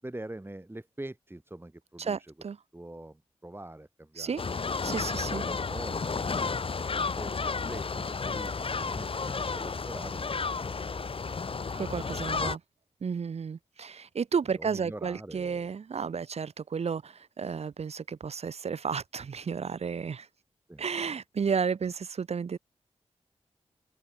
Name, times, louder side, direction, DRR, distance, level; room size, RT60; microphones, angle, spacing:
voice 1, 0.0-2.3 2.7-4.5 5.1-6.5 7.1-11.4 12.0-12.1 14.5-15.7 20.7-20.8, right 1 dB, 20° right, 6.8 m, -44 dB
voice 2, 2.0-2.6 4.2-4.4 4.8-5.4 11.8-12.6 13.0-20.3 20.8-22.6, right 6 dB, 65° right, 0.8 m, -32 dB
sound 1, 4.4-12.6, left 4 dB, 50° left, 1.2 m, -32 dB
open air
cardioid pair, 50°, 12 cm